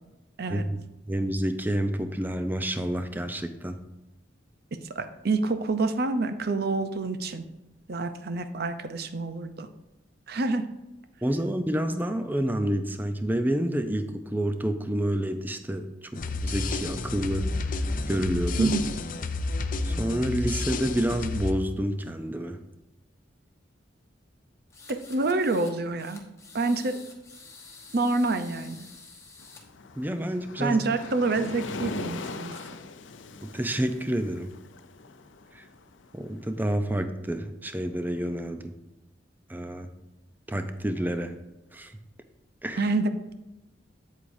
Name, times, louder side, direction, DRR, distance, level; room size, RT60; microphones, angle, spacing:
voice 1, 1.1-3.8 11.2-15.9 16.1-17.5 18.1-18.7 19.8-22.6 30.0-30.8 33.5-34.5 35.5-35.6 36.1-38.7 39.5-39.9 40.5-41.3 41.7-41.9 42.6-42.9, right 1 dB, 10° right, 8 dB, 0.5 m, -29 dB
voice 2, 4.9-7.4 7.9-9.7 10.3-10.7 18.6-18.8 24.9-26.2 26.5-27.0 27.9-28.9 30.6-32.5 42.8-43.1, right 3 dB, 55° right, 9 dB, 0.6 m, -27 dB
sound 1, 16.2-21.5, left 3 dB, 45° left, 0.5 m, -30 dB
sound 2, 24.7-25.7 26.0-29.6, left 4 dB, 15° left, 1.1 m, -49 dB
Waves surf, 29.4-36.5, left 3 dB, 90° left, 0.6 m, -40 dB
8.4 x 8.0 x 2.7 m, 0.98 s
head